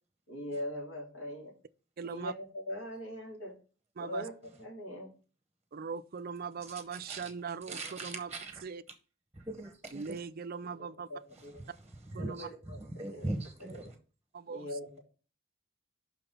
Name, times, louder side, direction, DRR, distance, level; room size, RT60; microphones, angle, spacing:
voice 1, 0.3-1.6 2.1-3.6 4.0-4.3 4.6-5.1 10.8-11.6 12.2-13.3 13.6-13.9 14.5-15.0, left 1 dB, 70° left, 3.8 m, -41 dB
voice 2, 2.0-2.3 4.0-4.3 5.7-8.3 8.6-8.8 9.9-11.1 12.1-12.5 14.3-14.7, right 5 dB, 45° right, 0.4 m, -40 dB
voice 3, 7.7-8.6 9.3-10.1 12.2-12.3 13.0-13.9, right 2 dB, 10° right, 0.9 m, -39 dB
5.9 x 5.9 x 5.3 m
head